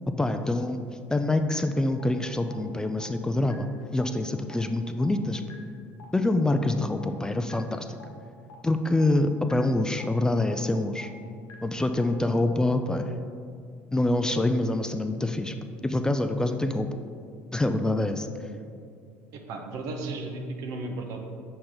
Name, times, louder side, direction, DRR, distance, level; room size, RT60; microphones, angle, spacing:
voice 1, 0.2-0.8 1.1-3.7 3.9-5.4 6.1-8.0 8.6-11.1 11.6-13.3 13.9-15.5 15.8-16.9 17.5-18.3, left 2 dB, 10° left, 7 dB, 0.3 m, -25 dB
sound 1, 1.5-1.6 2.0-2.1 2.5-2.6 3.0-3.1 3.5-3.6 4.0-4.1 4.5-4.6 5.0-5.1 5.5-5.6 6.0-6.1 6.5-6.6 7.0-7.1 7.5-7.6 8.0-8.1 8.5-8.6 9.0-9.1 9.5-9.6 10.0-10.1 10.5-10.6 11.0-11.1 11.5-11.6 12.0-12.1, left 5 dB, 65° left, 0.9 m, -47 dB
voice 2, 19.3-21.2, right 2 dB, 70° right, 3 dB, 0.8 m, -34 dB
6.4 x 4.4 x 3.9 m, 2.4 s
supercardioid pair, 85°, 6 cm